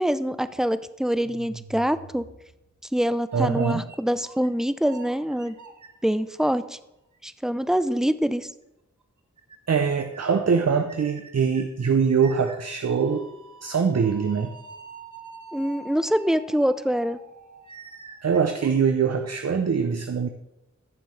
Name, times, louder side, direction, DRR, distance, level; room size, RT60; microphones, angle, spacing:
voice 1, 0.0-2.2 2.9-5.6 6.0-6.8 7.2-8.5 15.5-17.2, equal, ahead, 13 dB, 0.5 m, -25 dB
sound 1, 1.2-2.8 3.3-4.5 4.8-6.7 7.1-7.2 8.2-8.3 8.6-8.7 9.0-9.1 9.4-9.6 9.8-10.4 10.8-19.5, right 4 dB, 75° right, 1.1 m, -46 dB
voice 2, 3.3-3.9 9.7-13.3 13.6-14.5 18.2-20.3, right 6 dB, 60° right, 7 dB, 0.7 m, -23 dB
15.0 x 6.7 x 3.3 m, 0.89 s
cardioid pair, 45°, 30 cm